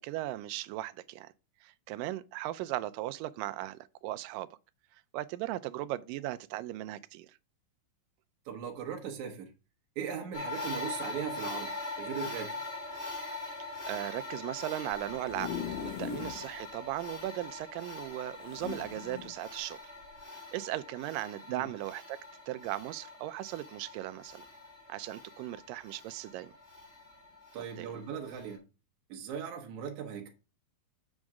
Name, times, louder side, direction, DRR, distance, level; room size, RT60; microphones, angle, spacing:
voice 1, 0.0-1.3 1.6-4.5 5.1-7.3 13.6-19.8 20.5-22.2 22.5-24.4 24.9-26.5 27.8-27.9, right 15 dB, 80° right, 2.2 m, -37 dB
voice 2, 8.5-9.5 10.0-12.6 21.5-21.7 27.5-28.6 29.1-30.3, right 7 dB, 65° right, 2.2 m, -39 dB
sound 1, 10.3-28.6, left 3 dB, 10° left, 3.2 m, -43 dB
sound 2, 14.9-16.4 16.9-17.0 17.2-17.3 18.4-19.3 20.0-20.2, left 8 dB, 75° left, 2.2 m, -39 dB
7.7 x 6.2 x 3.6 m
omnidirectional pair, 4.0 m